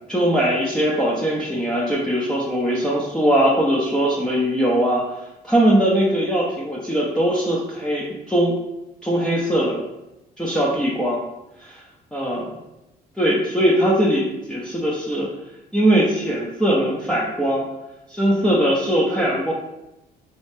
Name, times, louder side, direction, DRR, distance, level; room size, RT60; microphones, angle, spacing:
voice 1, 0.1-5.0 5.4-8.5 9.0-9.8 10.4-11.2 11.6-11.8 12.1-12.5 13.2-15.3 15.7-17.6 18.1-19.5, right 1 dB, 5° left, -5 dB, 0.7 m, -20 dB
4.3 x 3.0 x 3.2 m, 0.93 s
cardioid pair, 110°, 17 cm